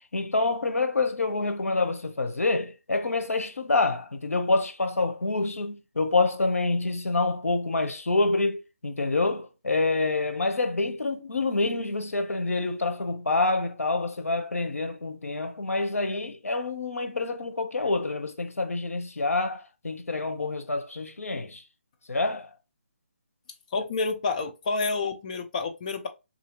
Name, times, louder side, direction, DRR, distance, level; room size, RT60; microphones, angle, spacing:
voice 1, 0.1-21.6 22.1-22.5, left 3 dB, 85° left, 0.8 m, -27 dB
voice 2, 23.7-26.1, left 3 dB, 30° left, 0.6 m, -29 dB
3.8 x 2.7 x 2.9 m
figure-of-eight pair, 160°, 8 cm